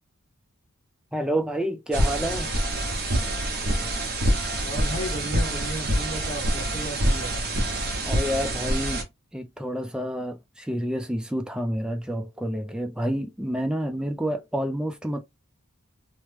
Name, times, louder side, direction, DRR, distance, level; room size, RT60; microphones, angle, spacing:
voice 1, 1.1-2.5 8.0-9.1 9.3-15.2, equal, 5° right, 0.4 m, -29 dB
sound 1, 1.9-9.0, right 1 dB, 45° right, 0.9 m, -26 dB
voice 2, 4.6-7.4, right 1 dB, 40° left, 0.8 m, -34 dB
3.0 x 2.1 x 3.2 m
head